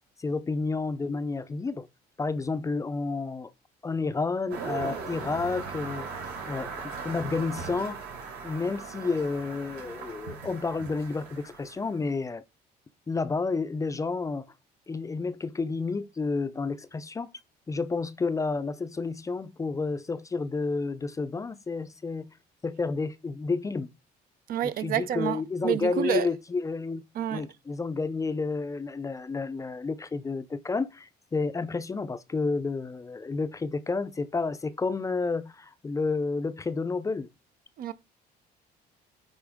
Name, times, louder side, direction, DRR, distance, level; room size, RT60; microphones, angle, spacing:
voice 1, 0.2-1.9 2.2-3.5 3.8-8.0 8.4-12.4 13.1-14.5 14.9-17.3 17.7-22.3 22.6-23.9 24.6-27.0 27.3-37.3, left 4 dB, 20° left, 0.4 m, -30 dB
sound 1, 4.5-12.0, right 5 dB, 75° right, 3.9 m, -39 dB
voice 2, 24.5-26.3 27.1-27.5 37.8-37.9, right 11 dB, 60° right, 0.5 m, -29 dB
9.0 x 4.2 x 3.6 m
cardioid pair, 110°, 17 cm